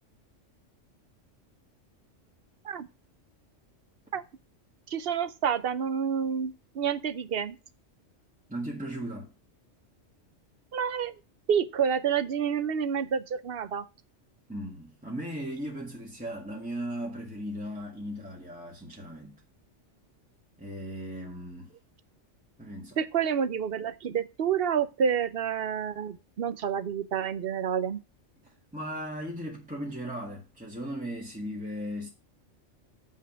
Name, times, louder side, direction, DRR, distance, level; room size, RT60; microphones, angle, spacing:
voice 1, 4.9-7.6 10.7-11.1 11.5-13.8 23.0-28.0, right 7 dB, 55° right, 0.8 m, -29 dB
voice 2, 8.5-9.3 14.5-19.4 20.6-21.7 22.6-23.0 28.4-32.1, equal, 5° right, 1.7 m, -37 dB
7.4 x 5.7 x 5.8 m
omnidirectional pair, 1.3 m